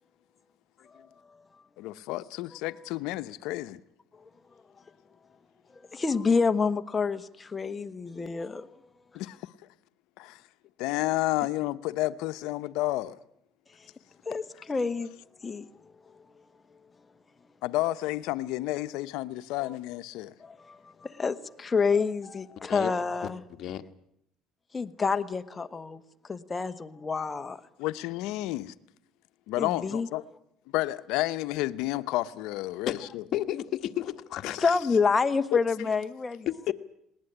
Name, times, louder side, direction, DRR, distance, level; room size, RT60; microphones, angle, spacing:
voice 1, 1.8-3.8 9.1-9.5 10.2-10.4 10.8-13.2 17.6-20.3 27.8-28.7 29.5-30.2 30.7-33.2 34.4-34.6 35.8-35.9, left 17 dB, 80° left, 0.9 m, -31 dB
voice 2, 5.7-8.8 14.2-15.1 15.4-15.7 19.6-19.8 20.4-23.4 24.7-27.6 29.6-30.1 34.6-36.7, left 5 dB, 20° left, 1.2 m, -28 dB
voice 3, 33.3-34.6 36.5-36.7, left 12 dB, 55° left, 1.5 m, -31 dB
19.5 x 19.0 x 10.0 m
cardioid pair, 130°, 0 cm